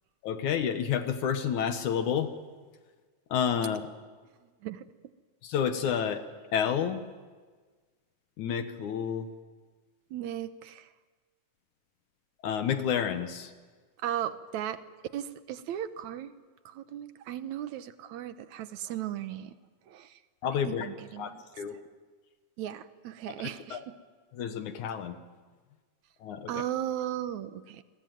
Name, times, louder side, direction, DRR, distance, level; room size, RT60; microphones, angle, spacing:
voice 1, 0.2-2.3 3.3-3.9 5.4-6.3 6.5-7.0 8.4-9.3 12.4-13.5 20.4-20.9 21.2-21.7 23.4-23.8 24.3-25.2 26.2-26.5, left 8 dB, 70° left, 9 dB, 2.5 m, -30 dB
voice 2, 10.1-10.9 14.0-14.8 15.1-16.3 16.7-19.5 19.9-20.2 20.7-21.4 21.7-21.8 22.6-23.9 26.5-27.8, right 11 dB, 70° right, 12 dB, 2.2 m, -36 dB
29.0 x 22.0 x 9.3 m, 1.4 s
omnidirectional pair, 3.8 m